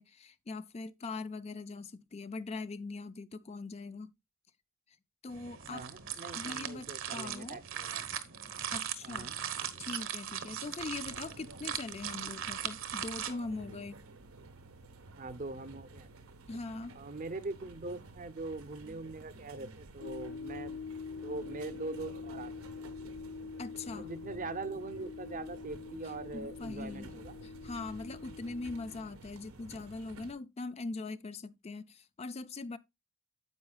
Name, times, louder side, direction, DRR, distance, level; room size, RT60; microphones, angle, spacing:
voice 1, 0.0-4.1 5.2-5.9 6.3-7.6 8.7-9.3 9.8-14.0 16.5-17.0 23.6-24.1 26.3-27.1 27.4-32.8, left 3 dB, 30° left, 0.4 m, -41 dB
sound 1, 5.3-13.3, right 9 dB, 60° right, 1.1 m, -39 dB
voice 2, 5.7-8.1 9.0-9.4 15.2-16.1 17.0-20.8 21.2-22.5 22.8-22.9 23.9-27.4, right 3 dB, 40° right, 0.7 m, -42 dB
sound 2, 10.8-30.3, right 2 dB, 80° right, 1.3 m, -52 dB
sound 3, 20.0-29.1, left 5 dB, 80° left, 0.7 m, -45 dB
9.6 x 8.1 x 2.3 m
head